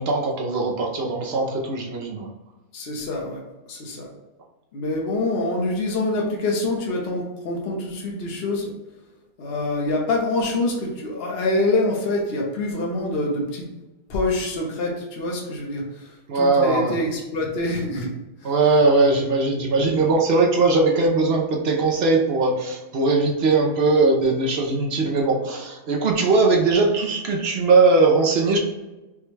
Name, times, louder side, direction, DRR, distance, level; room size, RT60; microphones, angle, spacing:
voice 1, 0.0-2.3 16.3-17.0 18.4-28.6, right 3 dB, 55° right, 0 dB, 0.7 m, -20 dB
voice 2, 2.7-3.4 3.7-4.1 4.7-8.7 9.4-13.7 14.1-18.1 18.4-18.5, left 2 dB, 45° left, -1 dB, 1.0 m, -25 dB
5.2 x 2.3 x 3.2 m, 1.0 s
omnidirectional pair, 1.7 m